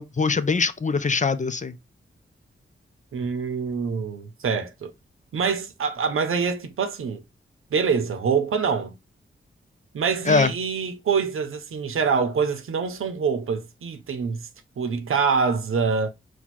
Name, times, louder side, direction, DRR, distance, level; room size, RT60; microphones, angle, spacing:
voice 1, 0.0-1.7 10.3-10.5, left 4 dB, 35° left, 0.5 m, -22 dB
voice 2, 3.1-4.9 5.3-7.2 7.7-9.0 9.9-14.5 14.8-16.1, right 5 dB, 85° right, 0.7 m, -25 dB
4.5 x 2.3 x 4.1 m
cardioid pair, 60°, 21 cm